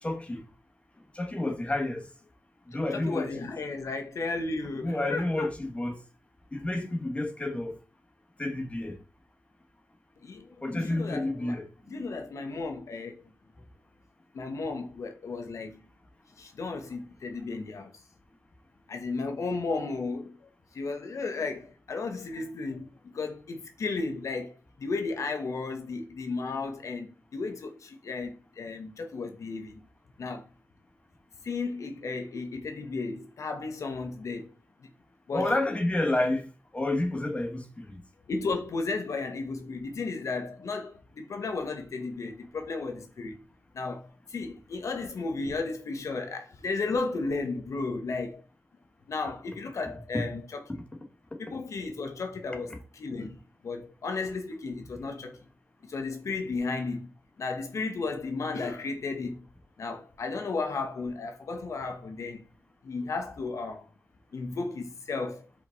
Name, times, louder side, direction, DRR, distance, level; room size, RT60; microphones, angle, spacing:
voice 1, 0.0-0.4 1.1-2.1 2.7-3.5 4.7-6.0 6.5-7.8 8.4-9.0 10.6-12.1 35.3-38.0 50.1-50.2 50.7-50.8 52.7-52.8, left 1 dB, 25° left, 1.6 m, -30 dB
voice 2, 2.9-5.5 10.2-10.5 10.8-11.5 11.9-13.2 14.3-15.8 16.4-17.9 18.9-20.4 20.7-29.8 30.2-30.4 31.4-34.5 35.3-35.5 38.3-43.3 43.7-44.0 44.3-48.4 49.1-50.6 51.4-52.7 53.0-55.4 55.8-57.1 57.4-59.4 59.8-62.4 62.8-63.9 64.3-65.5, left 3 dB, 80° left, 1.3 m, -34 dB
5.2 x 5.2 x 4.1 m
wide cardioid pair, 90°, 5 cm